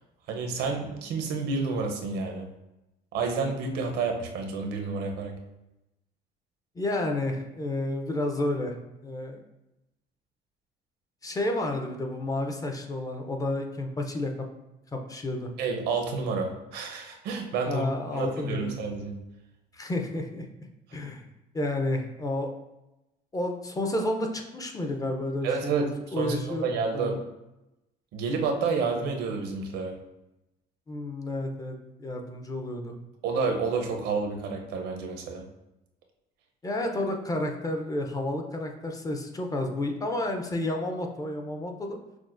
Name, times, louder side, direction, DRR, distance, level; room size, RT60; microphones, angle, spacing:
voice 1, 0.3-2.5 3.1-5.4 15.6-17.9 18.1-19.2 25.4-25.9 26.2-27.2 28.1-30.0 33.2-35.4, right 4 dB, 80° right, 2 dB, 0.6 m, -29 dB
voice 2, 6.8-8.7 9.0-9.4 11.2-14.3 14.9-15.5 17.6-18.7 19.7-20.5 20.9-21.2 21.5-22.5 23.3-27.2 30.9-32.9 36.6-42.0, left 1 dB, 20° left, 3 dB, 0.5 m, -31 dB
5.9 x 2.1 x 2.5 m, 0.94 s
cardioid pair, 110°, 17 cm